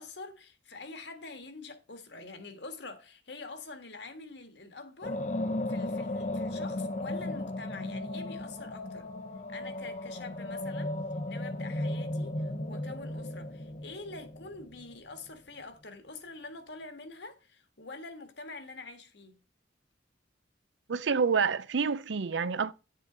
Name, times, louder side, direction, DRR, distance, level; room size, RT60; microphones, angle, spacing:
voice 1, 0.0-5.2 5.7-9.1 9.5-11.0 11.3-19.4, left 3 dB, 65° left, 1.7 m, -45 dB
sound 1, 5.0-15.2, left 1 dB, 40° left, 0.7 m, -35 dB
voice 2, 20.9-22.7, right 5 dB, 75° right, 0.6 m, -28 dB
10.5 x 7.5 x 3.9 m
head